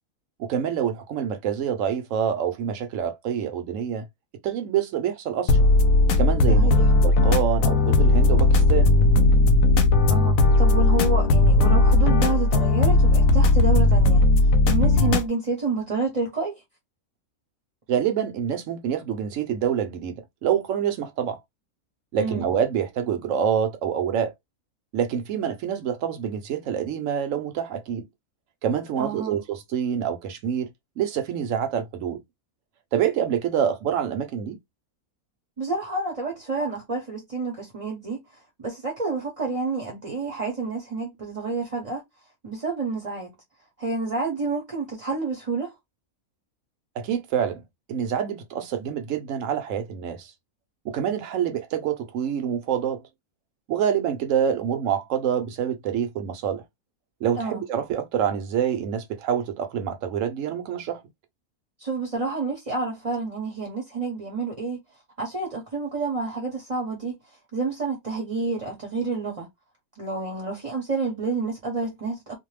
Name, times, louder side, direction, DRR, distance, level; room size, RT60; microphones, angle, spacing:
voice 1, 0.4-4.0 4.4-5.6 6.2-8.9 17.9-21.4 22.1-24.3 24.9-28.1 28.6-30.7 31.0-32.2 32.9-34.6 47.0-47.6 47.9-50.3 50.8-53.0 53.7-56.6 57.2-61.0, right 8 dB, 65° right, 1.0 m, -26 dB
sound 1, 5.5-15.3, left 2 dB, 70° left, 0.9 m, -17 dB
voice 2, 6.5-6.9 10.1-16.5 22.2-22.5 29.0-29.4 35.6-42.0 42.4-43.3 43.8-45.7 57.4-57.6 61.8-64.8 65.2-67.1 67.5-69.5 69.9-72.4, right 3 dB, 30° right, 0.7 m, -29 dB
2.6 x 2.2 x 3.2 m
omnidirectional pair, 1.5 m